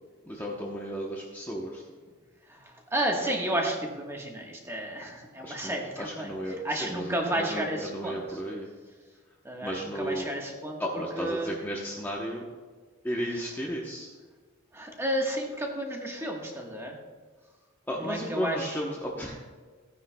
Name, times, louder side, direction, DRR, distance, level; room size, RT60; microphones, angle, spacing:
voice 1, 0.3-1.8 5.4-8.7 9.6-10.4 10.8-12.4 13.0-14.1 17.9-19.4, equal, 10° left, -3 dB, 0.9 m, -34 dB
voice 2, 2.5-8.4 9.4-10.8 11.1-11.5 13.3-13.4 14.7-16.9 18.0-18.8, right 1 dB, 10° right, 0 dB, 1.3 m, -32 dB
15.5 x 9.5 x 2.3 m, 1.5 s
head